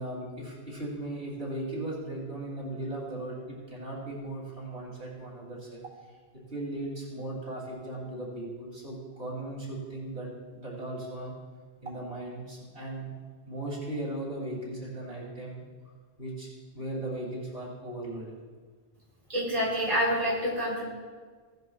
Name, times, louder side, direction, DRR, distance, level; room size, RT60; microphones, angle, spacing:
voice 1, 0.0-5.8 6.1-6.2 6.5-11.3 11.8-13.1 13.5-15.6 16.2-18.4, right 1 dB, 90° right, -5 dB, 3.5 m, -37 dB
voice 2, 19.3-20.8, equal, 35° right, -5 dB, 3.5 m, -27 dB
17.0 x 10.5 x 2.4 m, 1.5 s
omnidirectional pair, 1.1 m